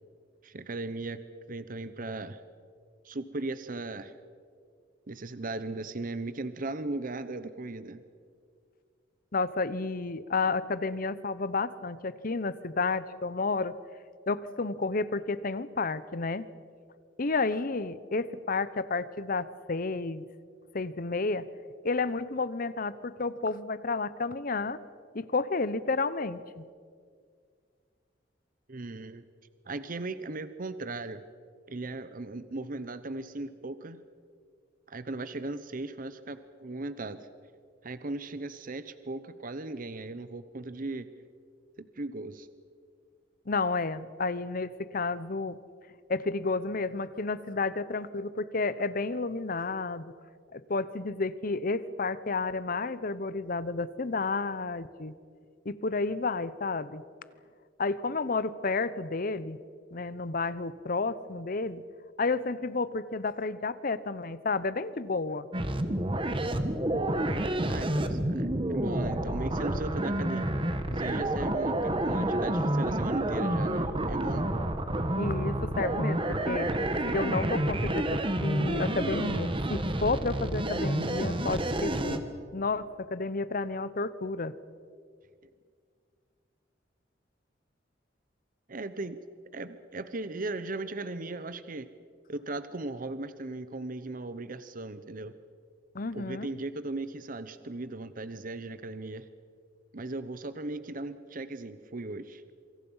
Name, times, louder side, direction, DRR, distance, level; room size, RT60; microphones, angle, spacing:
voice 1, 0.4-1.2 1.5-2.4 3.0-4.1 5.1-8.0 28.7-29.2 29.7-31.2 31.7-34.0 34.9-37.3 37.8-41.1 41.8-42.5 67.7-70.4 70.9-74.5 88.7-89.2 89.5-91.9 92.3-95.3 96.1-99.3 99.9-102.4, right 2 dB, 50° right, 12 dB, 0.9 m, -37 dB
voice 2, 9.3-13.8 14.3-16.5 17.2-20.2 20.7-21.5 21.8-24.8 25.1-26.6 43.5-45.6 46.1-50.0 50.5-55.1 55.6-57.0 57.8-59.6 59.9-61.8 62.2-65.5 75.2-76.7 77.1-82.2 82.5-84.5 95.9-96.5, left 3 dB, 50° left, 16 dB, 0.9 m, -31 dB
sound 1, 65.5-82.2, right 1 dB, 30° right, 1.5 m, -29 dB
27.5 x 25.0 x 5.7 m, 2.1 s
head